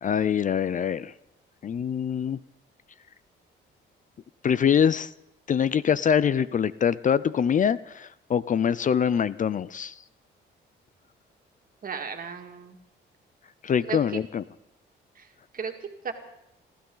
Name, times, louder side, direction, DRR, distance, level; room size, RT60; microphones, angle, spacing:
voice 1, 0.0-1.1 1.6-2.4 4.4-5.1 5.5-9.9 13.6-14.4, left 8 dB, 40° left, 17 dB, 0.5 m, -24 dB
voice 2, 11.8-12.8 13.8-14.2 15.2-15.3 15.5-15.7 16.0-16.1, right 6 dB, 45° right, 5 dB, 2.1 m, -34 dB
28.0 x 13.0 x 3.9 m, 0.84 s
cardioid pair, 90°, 20 cm